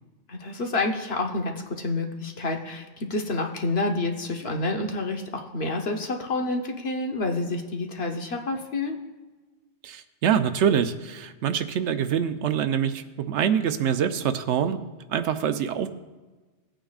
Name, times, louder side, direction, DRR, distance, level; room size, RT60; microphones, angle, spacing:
voice 1, 0.3-9.0, left 2 dB, 60° left, 2 dB, 1.2 m, -28 dB
voice 2, 9.8-14.8 15.1-15.9, right 8 dB, 75° right, 10 dB, 0.9 m, -25 dB
18.0 x 8.9 x 2.4 m, 1.2 s
omnidirectional pair, 1.2 m